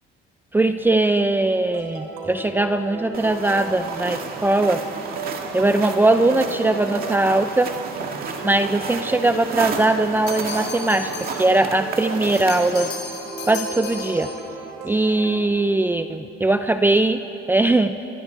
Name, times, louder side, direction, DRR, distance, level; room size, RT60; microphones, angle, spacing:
voice 1, 0.5-4.8 5.5-7.7 8.4-12.9 13.5-14.3 14.8-18.0, right 2 dB, 10° right, 9 dB, 0.5 m, -20 dB
sound 1, 1.7-15.5, right 3 dB, 80° right, 4.2 m, -35 dB
sound 2, 3.1-12.9, right 5 dB, 45° right, 2.2 m, -32 dB
sound 3, 10.3-11.5 12.3-14.4, left 4 dB, 60° left, 6.3 m, -35 dB
29.5 x 23.5 x 4.7 m, 2.9 s
cardioid pair, 135°, 21 cm